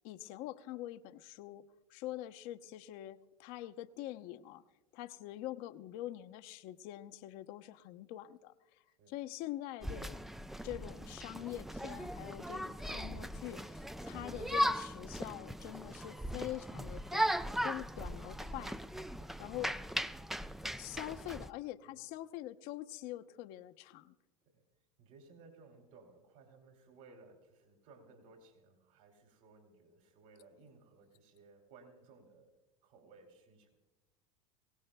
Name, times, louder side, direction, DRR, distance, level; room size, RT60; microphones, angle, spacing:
voice 1, 0.0-1.6 1.9-4.6 4.9-8.5 9.1-10.2 10.6-17.3 17.6-18.7 19.4-19.8 20.8-24.1, left 14 dB, 55° left, 9 dB, 0.7 m, -44 dB
Marrakech Walking Souks, 9.8-21.5, equal, ahead, 0.3 m, -38 dB
voice 2, 25.0-32.5 32.8-33.7, right 3 dB, 65° right, 2 dB, 2.9 m, -60 dB
23.0 x 17.0 x 2.2 m, 1.1 s
hypercardioid pair, 85°, 18 cm